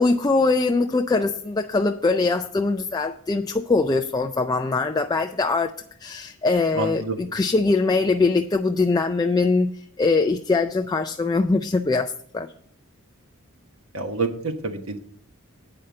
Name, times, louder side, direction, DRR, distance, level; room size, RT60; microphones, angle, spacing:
voice 1, 0.0-5.7 6.0-12.5, left 3 dB, 20° left, 5 dB, 0.3 m, -22 dB
voice 2, 6.7-7.2 13.9-15.0, right 3 dB, 70° right, 6 dB, 1.1 m, -27 dB
8.8 x 5.4 x 7.7 m, 0.62 s
head